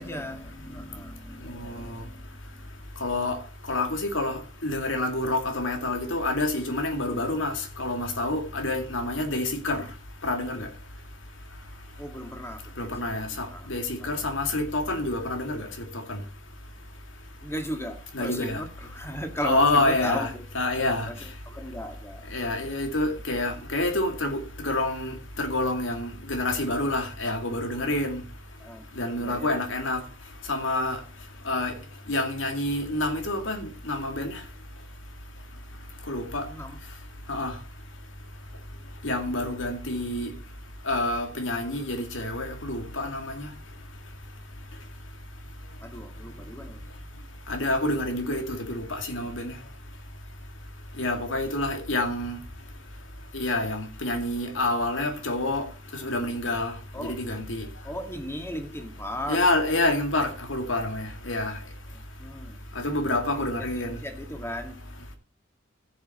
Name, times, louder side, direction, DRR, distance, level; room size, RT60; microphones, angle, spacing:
voice 1, 0.0-2.3 2.5-2.8 12.0-13.7 14.0-14.2 17.4-20.4 21.1-22.3 28.6-28.9 29.2-29.7 36.5-36.8 45.8-46.9 56.9-57.2 57.8-59.4 61.9-62.6 63.1-64.8, equal, 15° left, 1.9 m, -37 dB
voice 2, 1.5-2.0 3.0-3.4 3.7-9.8 10.2-10.7 12.8-16.2 18.1-18.6 19.4-21.1 22.3-28.2 29.0-30.0 30.5-31.0 31.5-31.7 32.1-34.4 36.1-36.5 37.3-37.5 39.0-40.3 40.9-43.5 47.5-49.5 51.0-52.4 53.3-55.7 55.9-56.7 57.0-57.7 59.3-61.6 62.8-64.0, left 2 dB, 85° left, 2.4 m, -28 dB
15.0 x 7.3 x 4.3 m
head